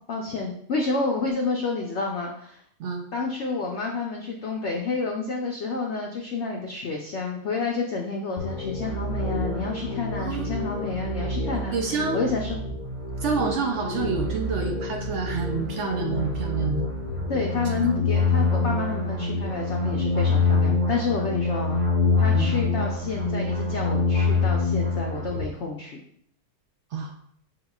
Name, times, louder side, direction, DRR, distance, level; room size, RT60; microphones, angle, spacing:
voice 1, 0.1-2.6 3.1-11.8 12.1-12.6 17.3-21.8 22.2-26.0, left 4 dB, 70° left, 0 dB, 0.6 m, -29 dB
sound 1, 8.4-25.4, left 3 dB, 25° right, 0.9 m, -26 dB
voice 2, 10.2-10.5 11.7-12.3 13.2-16.9 17.6-17.7 22.3-22.5 26.9-27.1, right 4 dB, 90° right, 2 dB, 0.6 m, -28 dB
5.4 x 3.8 x 2.3 m, 0.66 s
omnidirectional pair, 1.8 m